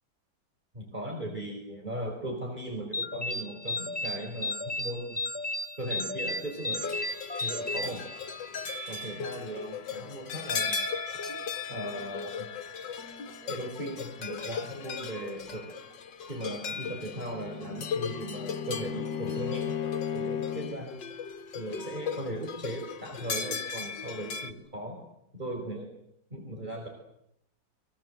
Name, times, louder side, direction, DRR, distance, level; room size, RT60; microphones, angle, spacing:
voice 1, 0.7-5.2 5.8-6.9 7.4-8.0 8.9-11.2 11.7-12.5 13.4-16.0 16.3-19.8 20.1-20.9 21.5-25.0 25.3-25.9 26.3-26.9, right 1 dB, 25° right, 1 dB, 4.8 m, -38 dB
sound 1, 2.9-8.7, left 2 dB, 10° left, 0.6 m, -34 dB
sound 2, 6.8-24.5, left 5 dB, 80° left, 2.1 m, -37 dB
Bowed string instrument, 17.0-20.9, left 8 dB, 60° left, 1.8 m, -35 dB
26.0 x 24.0 x 7.9 m, 0.79 s
omnidirectional pair, 1.9 m